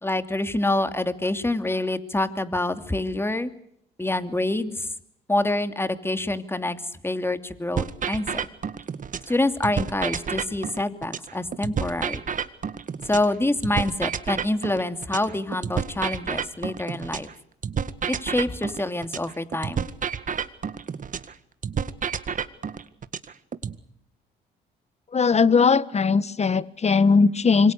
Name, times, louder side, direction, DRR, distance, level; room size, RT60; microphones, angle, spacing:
voice 1, 0.0-3.5 4.0-4.9 5.3-8.4 9.3-12.2 13.0-17.3 18.1-19.8, left 2 dB, 10° left, 9 dB, 2.8 m, -26 dB
sound 1, 7.8-9.3 9.6-13.3 13.6-17.3 17.6-21.3 21.6-23.8, right 7 dB, 45° right, 1.9 m, -30 dB
voice 2, 25.1-27.7, left 5 dB, 35° left, 17 dB, 1.5 m, -19 dB
26.5 x 24.5 x 6.8 m, 0.74 s
supercardioid pair, 60°, 19 cm